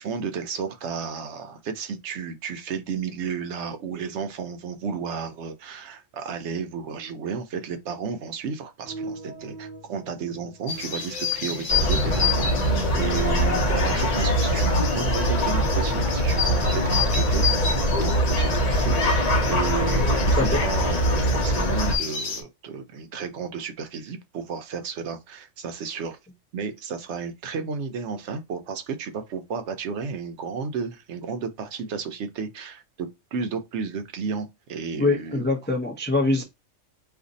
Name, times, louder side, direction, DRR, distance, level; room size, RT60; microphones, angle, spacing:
voice 1, 0.0-26.2 26.5-35.5 36.3-36.4, right 6 dB, 70° right, 0.9 m, -33 dB
sound 1, 8.8-13.9, equal, 45° right, 0.6 m, -39 dB
sound 2, 10.7-22.4, left 6 dB, 75° left, 1.1 m, -31 dB
sound 3, 11.7-22.0, equal, 40° left, 0.7 m, -22 dB
voice 2, 35.0-36.4, left 3 dB, 15° left, 0.3 m, -23 dB
2.6 x 2.5 x 3.8 m
omnidirectional pair, 1.3 m